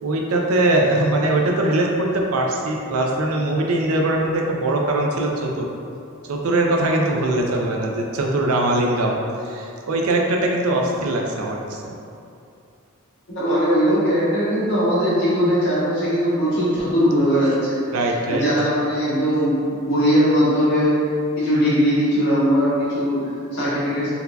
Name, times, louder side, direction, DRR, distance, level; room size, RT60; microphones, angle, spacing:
voice 1, 0.0-5.7 6.3-9.2 9.4-11.9 17.9-18.4, right 1 dB, 90° right, 0 dB, 0.5 m, -21 dB
voice 2, 13.3-17.8 18.0-21.0 21.3-24.1, equal, 60° left, -11 dB, 1.4 m, -20 dB
4.0 x 2.7 x 2.2 m, 2.6 s
head